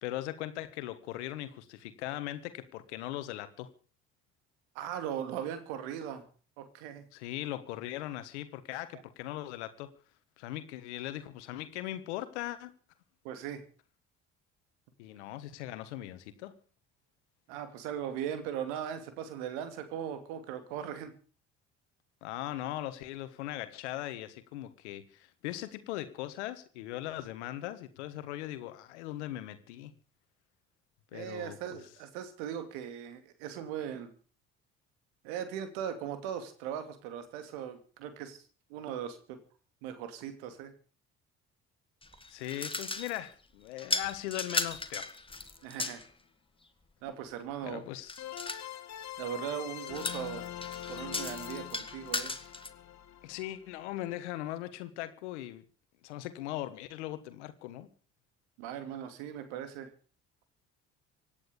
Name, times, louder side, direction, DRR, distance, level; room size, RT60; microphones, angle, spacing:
voice 1, 0.0-3.7 7.1-9.9 10.4-12.7 15.0-16.6 22.2-29.9 31.1-31.8 42.3-45.1 47.6-48.2 53.2-55.6 56.0-57.9, left 14 dB, 85° left, 12 dB, 1.4 m, -39 dB
voice 2, 4.7-6.3 6.6-7.0 13.2-13.6 17.5-21.1 31.1-34.1 35.2-38.4 38.7-39.4 39.8-40.7 45.6-46.0 47.0-47.8 49.2-50.5 50.9-52.3 58.6-59.9, right 9 dB, 80° right, 9 dB, 2.6 m, -39 dB
sound 1, 42.0-43.3 43.8-46.1 48.1-48.7 49.8-52.7, left 3 dB, 15° left, 2.1 m, -36 dB
sound 2, 45.3-45.4 48.2-54.1, left 12 dB, 55° left, 2.2 m, -43 dB
17.0 x 10.5 x 6.9 m, 0.39 s
hypercardioid pair, 60°, 34 cm